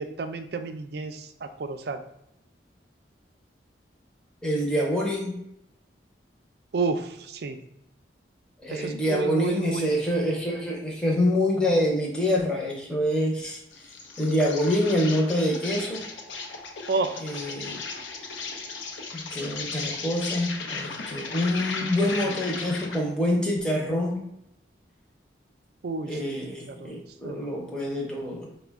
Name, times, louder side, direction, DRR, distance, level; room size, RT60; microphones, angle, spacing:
voice 1, 0.0-2.0 6.7-7.6 8.7-9.9 16.9-17.2 25.8-26.4 26.7-27.0 27.2-27.5, right 4 dB, 60° right, 8 dB, 0.4 m, -31 dB
voice 2, 4.4-5.3 8.6-13.6 14.2-16.0 17.2-17.8 19.1-24.2 26.1-28.5, equal, 5° left, -2 dB, 0.6 m, -26 dB
Insect, 13.7-23.1, left 4 dB, 85° left, 0.6 m, -36 dB
4.9 x 2.1 x 3.4 m, 0.80 s
head